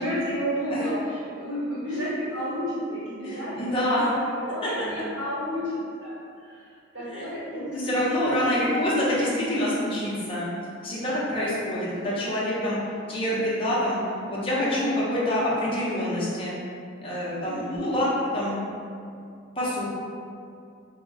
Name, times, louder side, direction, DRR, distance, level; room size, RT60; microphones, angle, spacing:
voice 1, 0.0-6.7 6.9-8.2 14.2-14.4 14.9-15.1 17.4-17.6, equal, 70° right, -10 dB, 1.2 m, -32 dB
voice 2, 3.2-4.1 4.6-4.8 7.0-7.3 7.5-10.5 10.8-12.8 13.1-16.5 17.0-18.1 18.3-18.6 19.6-19.8, left 1 dB, 30° left, -8 dB, 0.6 m, -26 dB
2.3 x 2.1 x 3.7 m, 2.4 s
head